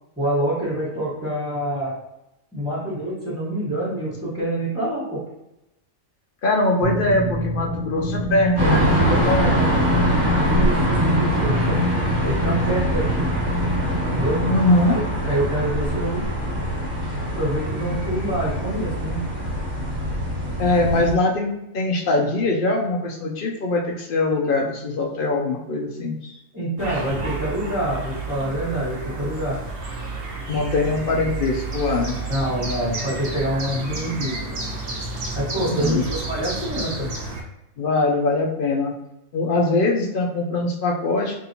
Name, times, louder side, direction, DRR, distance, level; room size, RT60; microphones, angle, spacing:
voice 1, 0.2-2.0 2.5-5.2 10.3-11.8 12.2-13.3 14.1-14.4 14.8-16.2 17.3-19.2 26.5-29.6 32.3-34.4 35.3-37.1, right 1 dB, 10° right, -12 dB, 1.2 m, -26 dB
voice 2, 6.4-9.8 14.4-15.0 20.6-26.4 30.5-32.2 35.7-36.0 37.8-38.9 39.3-41.4, left 2 dB, 55° left, 0 dB, 0.6 m, -22 dB
sound 1, 6.8-14.6, left 1 dB, 85° left, 1.1 m, -26 dB
sound 2, 8.6-21.1, right 1 dB, 25° right, 1.6 m, -23 dB
sound 3, 26.8-37.4, right 3 dB, 50° right, 0.9 m, -31 dB
4.2 x 2.7 x 2.8 m, 0.89 s
omnidirectional pair, 1.4 m